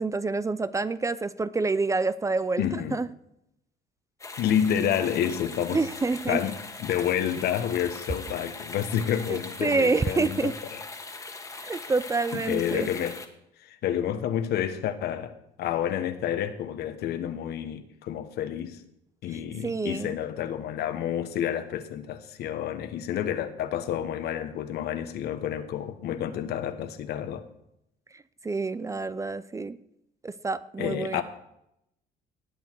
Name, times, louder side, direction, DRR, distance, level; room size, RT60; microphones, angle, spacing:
voice 1, 0.0-3.1 5.7-6.4 9.3-10.5 11.6-12.9 19.3-20.2 28.4-29.8 30.2-31.2, right 3 dB, 20° right, 0.5 m, -28 dB
voice 2, 2.6-3.0 4.4-5.8 6.3-10.8 12.3-13.2 13.6-15.3 15.6-18.8 19.2-27.4 30.8-31.2, left 9 dB, 70° left, 1.3 m, -29 dB
sound 1, 4.2-13.3, left 3 dB, 20° left, 1.5 m, -41 dB
18.5 x 8.1 x 4.6 m
cardioid pair, 110°, 17 cm